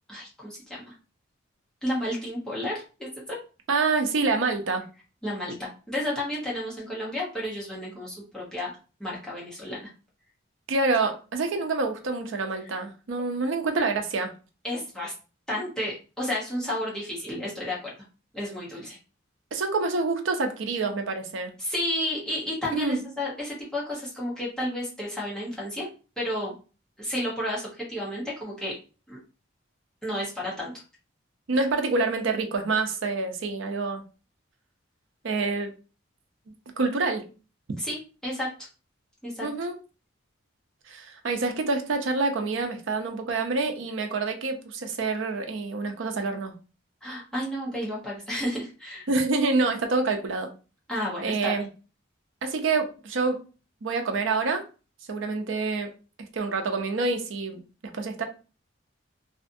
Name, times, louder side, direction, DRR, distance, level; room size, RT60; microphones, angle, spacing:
voice 1, 0.1-0.9 1.8-3.4 5.2-8.7 9.0-9.9 14.6-15.1 15.5-17.9 18.3-19.0 21.6-25.9 26.2-26.5 27.0-28.8 29.1-29.2 30.0-30.7 37.8-38.0 38.2-38.5 39.2-39.5 47.0-49.1 50.9-51.6, left 1 dB, 5° left, -6 dB, 0.8 m, -32 dB
voice 2, 3.7-4.9 10.7-14.3 19.5-21.5 22.7-23.0 31.5-34.0 35.2-35.7 36.8-37.3 39.4-39.7 40.9-46.5 49.1-50.5 51.2-51.7 52.4-53.4 53.8-54.6 55.1-55.9 56.3-58.2, right 3 dB, 75° right, 5 dB, 0.5 m, -27 dB
2.5 x 2.4 x 2.5 m, 0.34 s
head